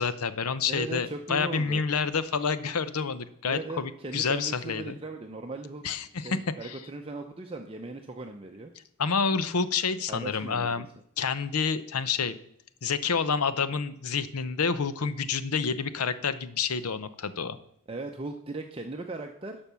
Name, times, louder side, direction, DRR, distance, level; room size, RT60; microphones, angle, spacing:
voice 1, 0.0-5.0 5.8-6.8 9.0-10.9 11.2-12.4 12.8-17.6, left 5 dB, 85° left, 14 dB, 0.7 m, -28 dB
voice 2, 0.7-1.8 3.5-5.8 6.2-8.7 10.1-10.8 17.9-19.6, right 2 dB, 25° right, 4 dB, 0.6 m, -38 dB
12.0 x 5.3 x 6.9 m, 0.73 s
head